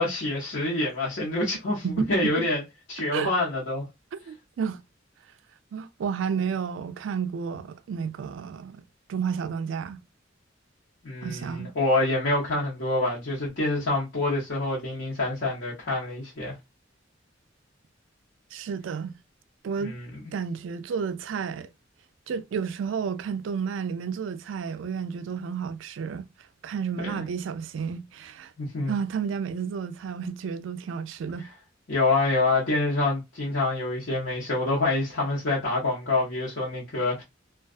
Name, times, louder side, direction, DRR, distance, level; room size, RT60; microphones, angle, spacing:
voice 1, 0.0-2.6 2.9-3.9 11.0-16.5 19.8-20.1 27.0-27.2 28.6-28.9 31.9-37.2, left 2 dB, 70° left, 0.9 m, -26 dB
voice 2, 1.8-2.3 3.1-3.3 4.1-4.8 5.7-8.8 9.1-10.0 11.2-11.7 18.5-19.1 19.6-19.9 20.3-21.7 22.3-26.3 26.6-28.5 28.9-31.5, right 6 dB, 70° right, 0.3 m, -31 dB
2.3 x 2.2 x 2.3 m
head